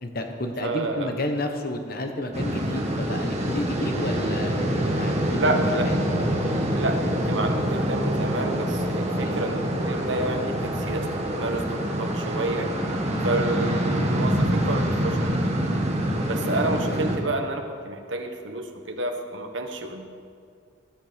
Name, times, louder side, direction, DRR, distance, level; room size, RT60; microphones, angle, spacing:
voice 1, 0.0-6.0 9.1-9.3 13.1-13.3 16.0-16.6, left 1 dB, 50° left, 5 dB, 1.3 m, -31 dB
voice 2, 0.6-1.1 5.3-5.9 6.7-7.0 7.2-12.7 13.2-15.5 16.3-20.1, right 2 dB, 65° right, 4 dB, 1.4 m, -29 dB
sound 1, 2.3-17.2, equal, 35° right, 1.6 m, -26 dB
19.5 x 9.4 x 5.2 m, 2.3 s
head